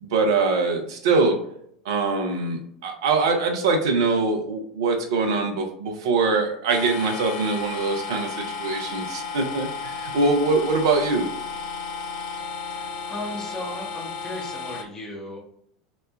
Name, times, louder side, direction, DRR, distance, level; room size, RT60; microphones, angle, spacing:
voice 1, 0.0-1.4 1.8-11.3, right 3 dB, 60° right, 3 dB, 0.5 m, -23 dB
sound 1, 6.7-14.8, left 5 dB, 50° left, 0.4 m, -33 dB
voice 2, 12.7-15.4, left 1 dB, 25° left, -1 dB, 0.7 m, -36 dB
3.0 x 2.1 x 2.2 m, 0.68 s
figure-of-eight pair, 80°, 3 cm